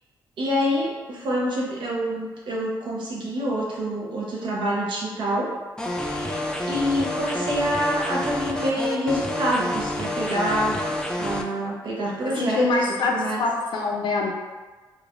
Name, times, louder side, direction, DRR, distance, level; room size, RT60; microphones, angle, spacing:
voice 1, 0.4-5.5 6.0-6.4 6.7-10.9 11.2-13.4, equal, 80° right, -4 dB, 0.7 m, -26 dB
sound 1, 5.8-11.4, left 1 dB, 10° left, 0.3 m, -28 dB
voice 2, 12.2-14.3, left 3 dB, 70° left, 1 dB, 0.5 m, -24 dB
3.2 x 2.1 x 2.4 m, 1.3 s
cardioid pair, 100°, 8 cm